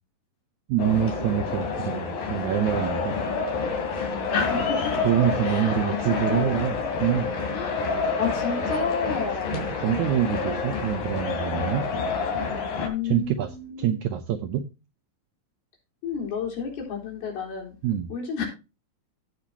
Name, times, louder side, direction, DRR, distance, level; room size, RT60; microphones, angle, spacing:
voice 1, 0.7-3.2 5.0-6.7 7.0-7.4 9.5-11.9 13.0-13.5 13.8-14.7 17.8-18.1, right 10 dB, 80° right, 7 dB, 1.8 m, -25 dB
sound 1, 0.8-12.9, left 4 dB, 70° left, 4.2 m, -28 dB
voice 2, 4.3-5.0 5.4-6.6 7.5-9.6 12.8-13.9 16.0-17.7 18.1-18.5, left 6 dB, 90° left, -1 dB, 5.8 m, -31 dB
17.0 x 6.1 x 2.9 m, 0.28 s
omnidirectional pair, 4.3 m